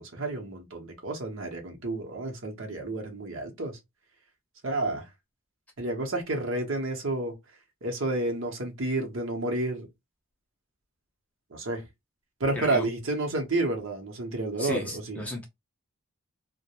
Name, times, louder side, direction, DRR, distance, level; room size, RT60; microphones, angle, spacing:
voice 1, 0.0-3.8 4.6-5.1 5.8-7.4 7.8-9.9 11.5-11.8 12.4-15.2, right 2 dB, 60° right, 0.8 m, -30 dB
voice 2, 12.5-12.9 14.6-15.4, left 1 dB, 5° left, 0.5 m, -34 dB
2.4 x 2.2 x 2.9 m
head